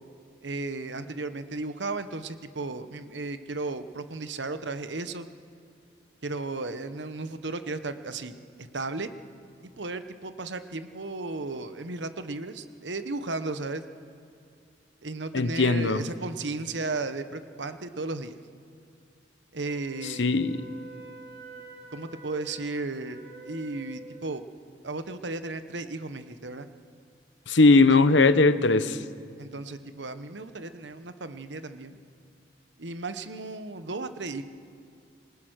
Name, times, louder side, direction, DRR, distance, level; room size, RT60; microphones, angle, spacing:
voice 1, 0.4-5.3 6.2-9.1 9.8-13.8 15.0-18.4 19.5-20.3 21.9-23.2 23.4-24.4 24.8-26.7 27.7-28.0 29.4-32.0 32.8-34.4, right 3 dB, 80° right, 10 dB, 1.1 m, -35 dB
voice 2, 15.3-16.0 20.2-20.6 27.5-29.0, left 3 dB, 85° left, 13 dB, 0.9 m, -19 dB
Wind instrument woodwind instrument, 19.6-24.3, right 3 dB, 60° right, 3.6 m, -47 dB
26.5 x 19.5 x 6.4 m, 2.5 s
head